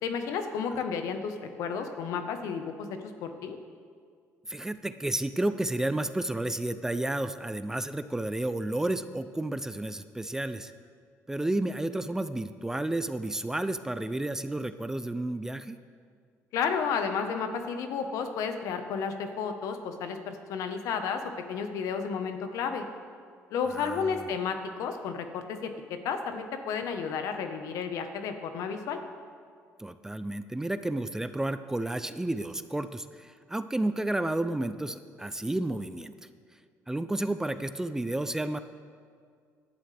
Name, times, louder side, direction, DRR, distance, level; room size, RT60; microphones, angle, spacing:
voice 1, 0.0-3.6 16.5-21.2 21.5-22.8 23.5-29.0, left 6 dB, 80° left, 7 dB, 1.1 m, -32 dB
voice 2, 4.5-10.7 11.3-15.8 23.7-24.3 29.8-36.1 36.9-38.6, right 1 dB, 10° right, 11 dB, 0.4 m, -31 dB
17.5 x 11.5 x 3.4 m, 2.1 s
cardioid pair, 115°, 6 cm